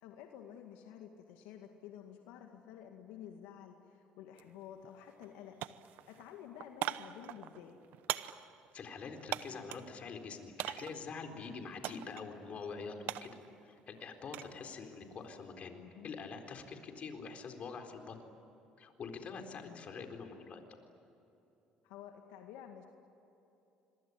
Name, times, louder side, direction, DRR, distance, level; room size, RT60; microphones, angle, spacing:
voice 1, 0.0-5.5 6.1-7.8 15.8-16.1 19.5-19.9 21.8-22.9, left 9 dB, 85° left, 3 dB, 2.0 m, -51 dB
sound 1, 4.3-4.5 4.8-5.3 5.6-9.9 10.6-11.1 11.8-12.3 12.6-14.6 14.9-15.3, right 14 dB, 75° right, 0.9 m, -41 dB
voice 2, 8.7-13.3 13.6-18.2 18.8-20.6, left 5 dB, 50° left, 5 dB, 4.1 m, -45 dB
26.5 x 22.5 x 9.8 m, 3.0 s
supercardioid pair, 85°, 3 cm